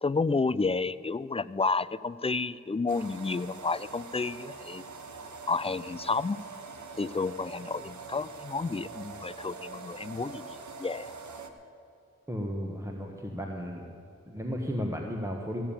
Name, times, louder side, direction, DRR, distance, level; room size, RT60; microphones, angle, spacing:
voice 1, 0.0-4.8 5.5-6.4 7.0-11.1, left 4 dB, 20° left, 17 dB, 0.4 m, -31 dB
sound 1, 2.9-11.5, right 4 dB, 80° right, 1.0 m, -44 dB
voice 2, 12.3-13.9 14.3-15.6, equal, 10° right, 1 dB, 1.4 m, -34 dB
15.0 x 7.3 x 8.7 m, 2.8 s
cardioid pair, 45°, 29 cm